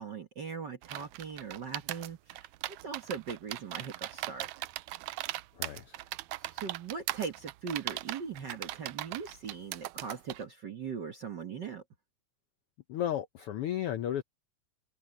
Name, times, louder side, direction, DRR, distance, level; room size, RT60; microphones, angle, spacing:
voice 1, 0.0-2.4 2.8-4.5 6.5-11.8, right 6 dB, 55° right, 1.3 m, -40 dB
sound 1, 0.8-10.4, right 17 dB, 80° right, 1.9 m, -39 dB
voice 2, 5.5-6.0 12.9-14.2, left 11 dB, 75° left, 1.3 m, -34 dB
omnidirectional pair, 3.4 m